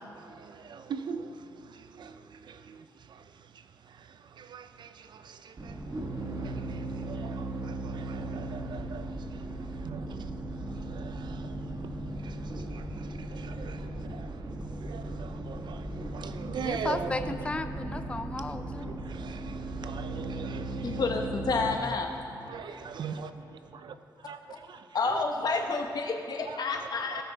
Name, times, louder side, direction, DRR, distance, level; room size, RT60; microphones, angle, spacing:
voice 1, 0.0-1.3 1.7-2.2 2.5-2.8 3.1-3.2 4.4-5.7 6.4-9.1 9.8-10.3 10.9-11.6 12.2-12.4 12.7-14.3 14.8-15.9 16.1-17.5 18.8-21.1 21.5-21.6 22.4-23.3 23.7-23.9 24.3-24.4 24.7-25.2 26.4-27.2, right 6 dB, 75° right, 0.5 m, -41 dB
sound 1, 5.6-21.8, right 2 dB, 45° right, 1.1 m, -37 dB
voice 2, 16.6-19.0, left 2 dB, 15° left, 0.4 m, -34 dB
voice 3, 20.8-22.1 24.9-27.2, left 4 dB, 60° left, 1.0 m, -29 dB
17.0 x 6.0 x 4.0 m
wide cardioid pair, 105°, 8 cm